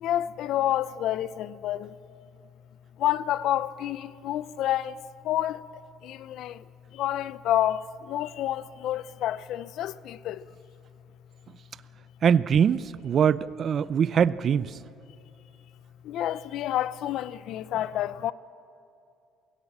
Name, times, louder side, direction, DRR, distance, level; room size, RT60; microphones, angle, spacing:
voice 1, 0.0-1.9 3.0-4.9 5.3-5.6 6.0-6.6 7.0-7.8 8.1-10.4 16.1-18.3, left 12 dB, 70° left, 0.6 m, -28 dB
voice 2, 12.2-14.8, right 7 dB, 45° right, 0.5 m, -23 dB
23.5 x 16.5 x 7.3 m
cardioid pair, 100°, 0 cm